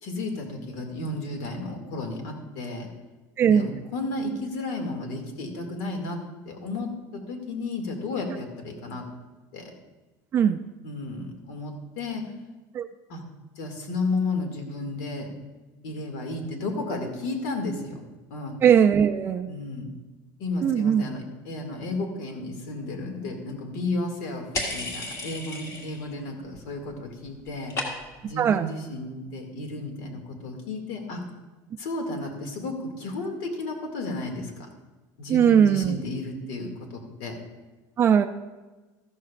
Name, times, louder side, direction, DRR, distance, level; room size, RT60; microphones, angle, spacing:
voice 1, 0.0-2.9 3.4-6.2 6.5-9.0 9.5-9.7 10.8-12.2 13.1-13.2 13.6-15.3 15.8-18.0 18.3-18.6 19.5-19.9 20.4-24.5 24.7-27.7 28.2-31.2 31.8-34.7 35.2-36.7 37.2-37.3, left 2 dB, 75° left, 3 dB, 2.2 m, -33 dB
voice 2, 3.4-3.7 10.3-10.6 12.7-12.9 18.6-19.5 20.6-21.0 28.4-28.7 35.3-36.0 38.0-38.3, right 8 dB, 25° right, 10 dB, 0.4 m, -19 dB
sound 1, 24.5-26.1 26.4-27.0 27.2-28.3, left 2 dB, 35° left, 1.6 m, -34 dB
14.0 x 12.5 x 2.5 m, 1.2 s
cardioid pair, 175°, 9 cm